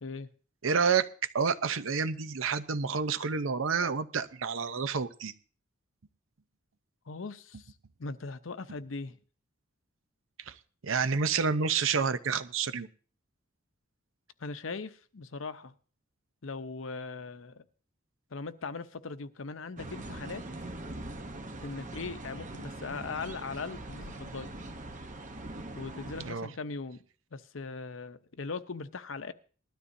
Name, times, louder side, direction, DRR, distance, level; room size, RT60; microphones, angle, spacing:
voice 1, 0.6-1.1 1.3-5.3 10.5-10.6 10.8-12.9 26.2-26.5, right 5 dB, 85° right, 13 dB, 0.7 m, -29 dB
voice 2, 7.1-7.7 8.0-9.2 14.4-15.7 16.4-17.6 18.3-20.4 21.6-24.5 25.7-27.0 27.3-29.3, left 4 dB, 75° left, 11 dB, 0.8 m, -39 dB
sound 1, 19.8-26.3, right 2 dB, 40° right, 0.9 m, -42 dB
20.0 x 12.5 x 2.7 m, 0.40 s
head